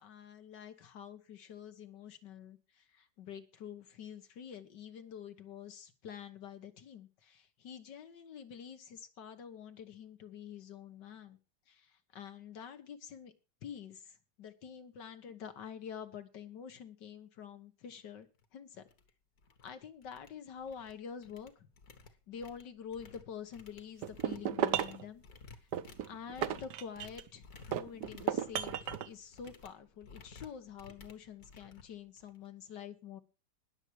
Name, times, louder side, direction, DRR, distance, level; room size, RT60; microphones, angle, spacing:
voice 1, 0.0-11.4 11.7-13.3 13.6-18.9 19.6-21.7 22.3-25.2 25.5-25.7 26.1-33.2, left 8 dB, 85° left, 9 dB, 1.9 m, -48 dB
sound 1, 18.3-18.4 18.9-19.1 19.4-19.7 20.0-20.9 21.2-32.5, left 4 dB, 60° left, 2.0 m, -56 dB
sound 2, 24.0-25.0 25.7-27.3 27.7-29.1, right 10 dB, 75° right, 1.4 m, -34 dB
20.0 x 7.0 x 4.7 m, 0.32 s
omnidirectional pair, 1.8 m